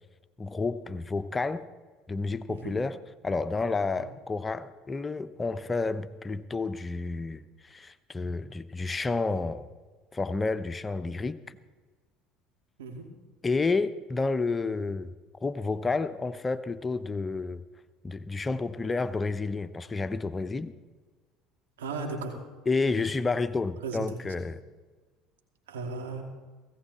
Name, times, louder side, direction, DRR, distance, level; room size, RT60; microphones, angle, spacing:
voice 1, 0.4-1.7 2.1-9.6 10.1-11.6 13.4-15.1 15.4-17.6 18.0-20.7 22.7-24.6, left 3 dB, 20° left, 12 dB, 0.8 m, -30 dB
voice 2, 21.8-22.4 22.8-22.9 23.8-24.0 24.4-24.5 25.7-26.2, right 4 dB, 85° right, 2 dB, 2.7 m, -36 dB
17.0 x 16.0 x 4.3 m, 1.3 s
hypercardioid pair, 70°, 0 cm